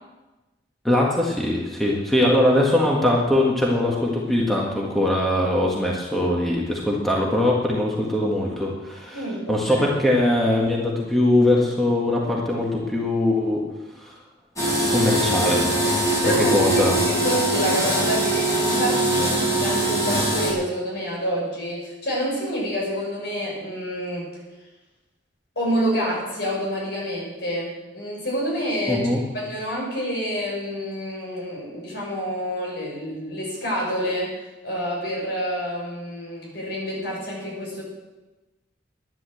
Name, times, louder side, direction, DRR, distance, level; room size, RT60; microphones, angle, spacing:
voice 1, 0.8-13.6 14.0-14.1 14.9-15.7 16.4-17.0 28.9-29.2, left 1 dB, ahead, -3 dB, 1.8 m, -21 dB
voice 2, 9.1-9.9 16.2-24.3 25.5-29.1 29.3-34.3 34.6-37.8, equal, 60° left, -3 dB, 6.4 m, -28 dB
sound 1, 14.6-20.5, right 1 dB, 15° left, 4.6 m, -22 dB
11.5 x 10.5 x 7.8 m, 1.1 s
head